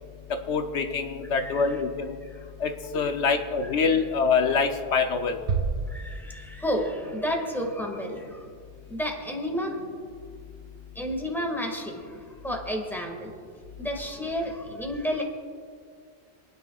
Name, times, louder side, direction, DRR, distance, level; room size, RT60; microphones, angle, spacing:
voice 1, 0.5-2.2 2.6-5.5, left 5 dB, 80° left, 6 dB, 1.1 m, -25 dB
voice 2, 1.4-1.7 5.9-8.5 8.9-9.8 11.0-12.1 12.4-13.3 13.8-15.2, equal, ahead, 1 dB, 1.9 m, -31 dB
sound 1, 5.5-7.1, right 4 dB, 85° right, 1.1 m, -30 dB
28.5 x 9.8 x 2.4 m, 2.1 s
omnidirectional pair, 1.2 m